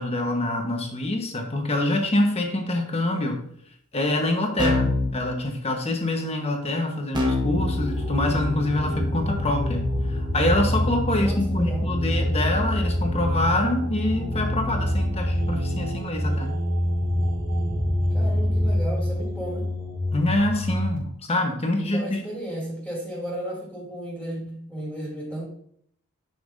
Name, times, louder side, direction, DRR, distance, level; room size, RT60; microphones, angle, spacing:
voice 1, 0.0-3.4 3.9-16.5 20.1-22.2, left 1 dB, 30° left, 3 dB, 1.2 m, -25 dB
Keyboard (musical), 4.6-5.1 7.1-16.0, left 2 dB, 20° right, 1.3 m, -29 dB
sound 1, 7.6-21.0, equal, 80° right, 2.9 m, -26 dB
voice 2, 11.2-11.9 18.1-19.7 21.8-25.5, right 1 dB, ahead, -6 dB, 2.7 m, -34 dB
9.8 x 5.8 x 2.7 m, 0.66 s
head